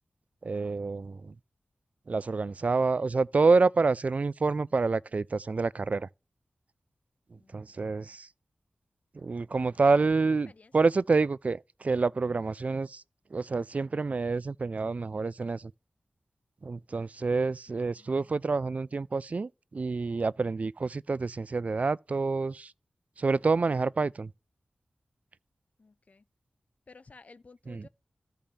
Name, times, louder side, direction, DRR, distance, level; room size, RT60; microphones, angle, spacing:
voice 1, 0.4-1.3 2.1-6.1 7.5-8.3 9.2-13.0 13.3-15.7 16.6-22.7 23.2-24.3 27.7-27.9, right 4 dB, 50° right, 0.3 m, -28 dB
voice 2, 7.4-8.2 9.8-10.0 10.5-10.7 17.7-18.3 25.8-26.2 26.9-27.9, left 4 dB, 50° left, 0.5 m, -55 dB
14.0 x 5.2 x 2.8 m
cardioid pair, 55°, 3 cm